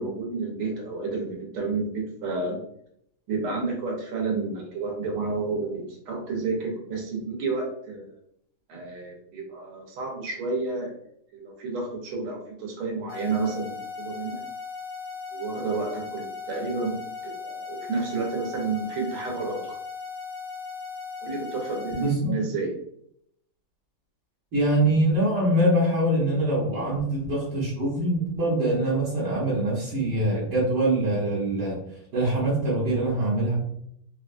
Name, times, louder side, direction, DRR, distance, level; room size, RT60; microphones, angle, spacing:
voice 1, 0.0-2.6 3.3-8.2 8.7-11.0 11.3-14.4 15.3-17.0 17.4-19.8 21.2-22.7 26.7-26.8, right 4 dB, 85° right, 0 dB, 1.8 m, -30 dB
sound 1, 13.1-22.1, left 5 dB, 90° left, 1.7 m, -37 dB
voice 2, 22.0-22.3 24.5-31.8 32.1-33.6, right 1 dB, 65° right, -8 dB, 1.5 m, -24 dB
4.1 x 2.2 x 2.5 m, 0.71 s
omnidirectional pair, 2.3 m